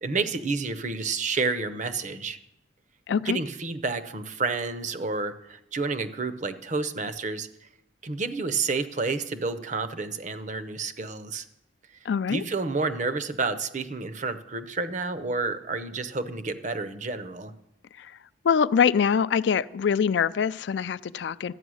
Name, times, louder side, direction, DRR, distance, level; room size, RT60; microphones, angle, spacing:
voice 1, 0.0-2.4 3.2-7.5 8.0-11.5 12.3-17.5, right 4 dB, 40° right, 12 dB, 0.7 m, -30 dB
voice 2, 3.1-3.4 12.1-12.4 18.0-18.1 18.4-21.5, left 7 dB, 65° left, 16 dB, 0.3 m, -24 dB
12.5 x 9.0 x 6.3 m, 0.84 s
head